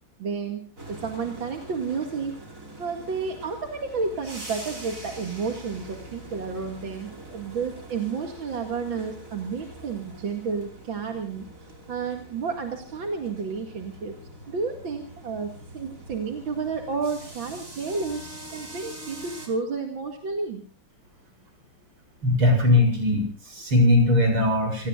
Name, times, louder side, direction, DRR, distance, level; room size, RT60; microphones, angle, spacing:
voice 1, 0.2-2.3 2.8-14.2 14.5-20.6, right 5 dB, 65° right, 4 dB, 2.9 m, -31 dB
sound 1, 0.8-19.5, right 1 dB, 40° right, 5.4 m, -43 dB
voice 2, 22.2-24.9, left 2 dB, 85° right, 4 dB, 8.2 m, -20 dB
29.0 x 19.0 x 2.5 m, 0.39 s
omnidirectional pair, 2.3 m